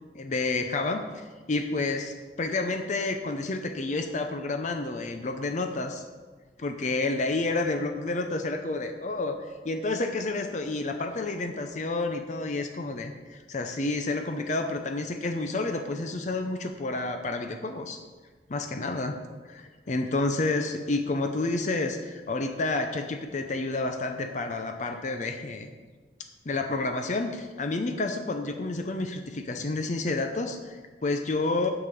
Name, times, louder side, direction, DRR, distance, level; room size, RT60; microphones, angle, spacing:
voice 1, 0.1-6.0 6.6-9.4 9.7-18.0 18.5-19.2 19.4-25.7 26.5-31.7, left 2 dB, 40° left, 6 dB, 0.5 m, -30 dB
8.7 x 4.9 x 6.9 m, 1.4 s
head